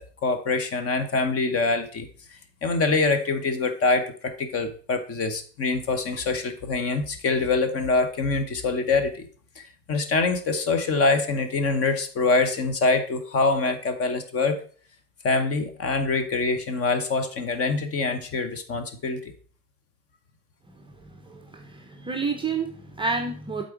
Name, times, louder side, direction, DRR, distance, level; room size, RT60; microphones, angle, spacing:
voice 1, 0.0-2.1 2.6-9.3 9.6-14.6 15.2-19.2, left 3 dB, 30° left, 9 dB, 1.0 m, -24 dB
voice 2, 20.8-23.6, right 4 dB, 10° right, 2 dB, 0.6 m, -30 dB
8.1 x 4.1 x 4.6 m, 0.44 s
hypercardioid pair, 90°, 49 cm